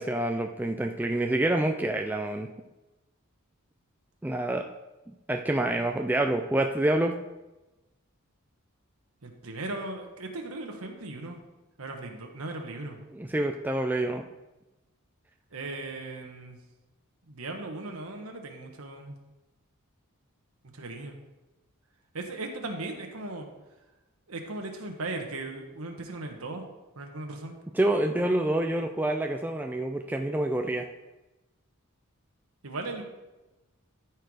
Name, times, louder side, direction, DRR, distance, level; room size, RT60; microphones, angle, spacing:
voice 1, 0.0-2.5 4.2-4.6 5.1-7.1 13.1-14.2 27.7-30.9, right 1 dB, 10° right, 3 dB, 0.4 m, -27 dB
voice 2, 9.2-11.4 11.8-13.0 15.5-16.6 17.3-19.2 20.7-21.2 22.1-23.5 24.3-26.6 27.0-27.6 32.6-33.0, right 2 dB, 75° right, 3 dB, 1.2 m, -37 dB
13.0 x 4.6 x 4.8 m, 1.0 s
head